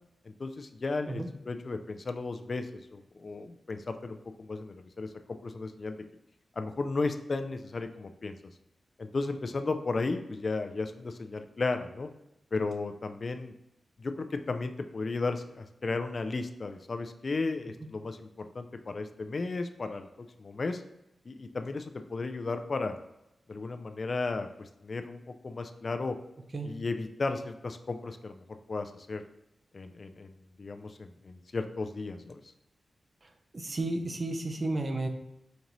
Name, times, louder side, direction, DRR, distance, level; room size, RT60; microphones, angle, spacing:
voice 1, 0.3-6.0 6.6-8.4 9.0-12.1 12.5-13.5 14.0-20.8 21.3-23.0 23.5-26.2 26.6-29.2 29.7-32.4, left 3 dB, 55° left, 8 dB, 0.3 m, -34 dB
voice 2, 33.5-35.1, right 2 dB, 50° right, 4 dB, 0.6 m, -32 dB
5.2 x 2.6 x 3.0 m, 0.87 s
cardioid pair, 45°, 0 cm